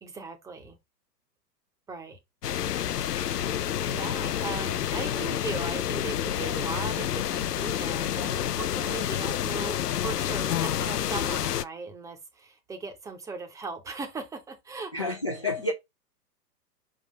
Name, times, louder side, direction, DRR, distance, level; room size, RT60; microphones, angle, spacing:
voice 1, 0.0-0.8 1.9-2.2 3.9-15.0, right 4 dB, 5° right, 0.7 m, -38 dB
sound 1, 2.4-11.6, left 10 dB, 70° left, 0.6 m, -29 dB
voice 2, 14.9-15.7, left 2 dB, 20° left, 0.3 m, -29 dB
5.1 x 3.7 x 5.0 m
figure-of-eight pair, 115°, 50 cm